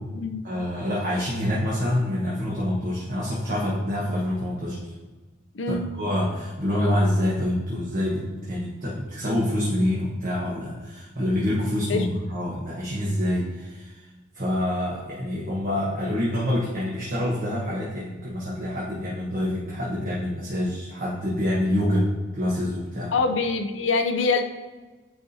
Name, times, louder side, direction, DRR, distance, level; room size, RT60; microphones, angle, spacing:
voice 1, 0.4-4.9 5.7-13.9 14.3-23.1, left 1 dB, 45° right, -6 dB, 1.2 m, -26 dB
voice 2, 5.5-5.9 11.9-12.1 23.1-24.4, left 4 dB, 80° left, 6 dB, 0.6 m, -24 dB
9.7 x 4.1 x 2.8 m, 1.3 s
head